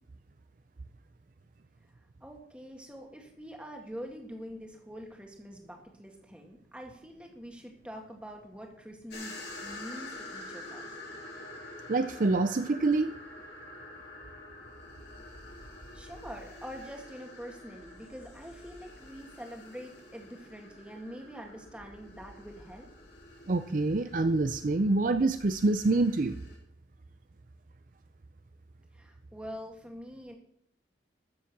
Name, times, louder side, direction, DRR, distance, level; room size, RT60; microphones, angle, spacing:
voice 1, 2.2-11.0 15.9-22.9 28.9-30.4, equal, 5° right, 2 dB, 2.0 m, -45 dB
sound 1, 9.1-26.6, left 2 dB, 65° left, 3.6 m, -47 dB
voice 2, 11.9-13.1 23.5-26.4, right 2 dB, 45° right, 10 dB, 0.5 m, -26 dB
13.5 x 7.4 x 6.0 m, 0.71 s
head